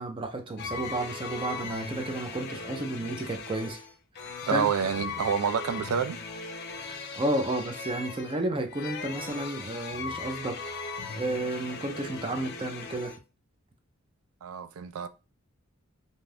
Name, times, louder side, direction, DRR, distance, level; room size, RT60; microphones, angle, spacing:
voice 1, 0.0-3.8 4.5-4.7 7.1-10.6 11.1-13.1, right 1 dB, 25° right, 0.5 m, -32 dB
sound 1, 0.6-13.2, left 4 dB, 50° left, 0.4 m, -39 dB
voice 2, 4.5-6.2 14.4-15.1, right 7 dB, 85° right, 0.3 m, -28 dB
2.6 x 2.4 x 3.3 m
head